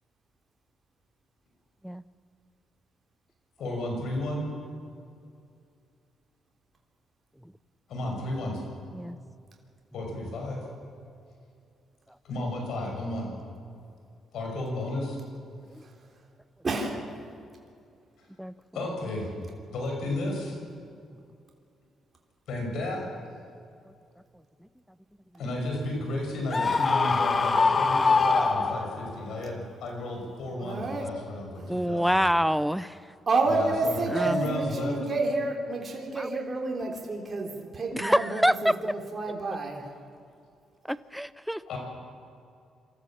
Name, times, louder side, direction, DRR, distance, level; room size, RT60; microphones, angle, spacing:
voice 1, 3.6-4.5 7.9-8.6 9.9-10.6 12.2-13.3 14.3-15.2 18.7-19.3 19.7-20.6 22.5-23.1 25.4-32.2 33.4-35.0 41.7-41.8, left 1 dB, 75° left, 2 dB, 6.1 m, -33 dB
voice 2, 16.6-17.0 30.6-31.1 31.6-31.7 33.3-39.8, right 3 dB, 35° right, 0 dB, 3.5 m, -29 dB
Screaming, 26.5-29.2, left 4 dB, 35° left, 1.2 m, -23 dB
voice 3, 31.7-33.0 34.1-34.4 36.2-36.3 37.9-38.7 40.9-41.6, equal, ahead, 16 dB, 0.6 m, -26 dB
26.0 x 14.0 x 7.4 m, 2.4 s
cardioid pair, 90°, 0 cm